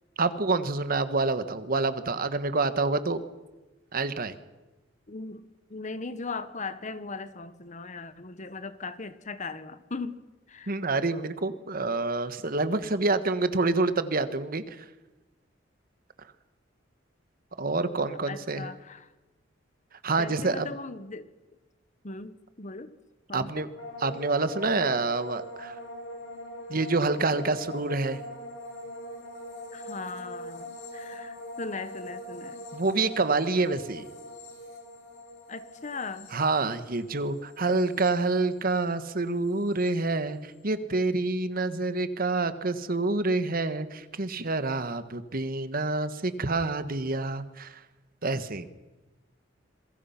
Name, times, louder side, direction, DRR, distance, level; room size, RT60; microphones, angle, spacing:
voice 1, 0.2-3.2 3.9-4.3 10.7-14.8 17.6-18.7 20.0-20.7 23.3-23.7 24.0-25.8 26.7-28.2 32.7-34.1 36.3-47.8 48.2-48.6, right 3 dB, 50° right, 12 dB, 1.3 m, -27 dB
voice 2, 5.1-5.4 5.7-10.2 10.5-10.7 18.1-19.1 20.2-21.3 22.0-22.9 23.3-23.6 29.7-32.5 35.5-36.3, left 3 dB, 40° left, 13 dB, 1.2 m, -38 dB
sound 1, 23.8-39.0 39.3-39.9, equal, 75° left, 6.8 m, -42 dB
27.0 x 22.0 x 5.9 m, 1.1 s
head